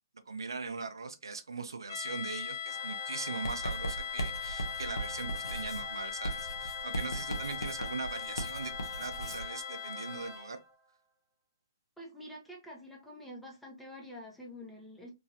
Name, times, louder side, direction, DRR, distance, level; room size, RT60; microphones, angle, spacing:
voice 1, 0.3-10.6, right 4 dB, 85° right, 0.5 m, -40 dB
sound 1, 1.9-10.6, left 8 dB, 55° left, 0.4 m, -40 dB
sound 2, 2.6-10.9, right 4 dB, 35° right, 1.2 m, -50 dB
Writing, 3.4-9.5, right 1 dB, 85° left, 0.8 m, -39 dB
voice 2, 12.0-15.1, left 1 dB, ahead, 0.7 m, -47 dB
3.0 x 2.4 x 2.7 m
hypercardioid pair, 150°, 2 cm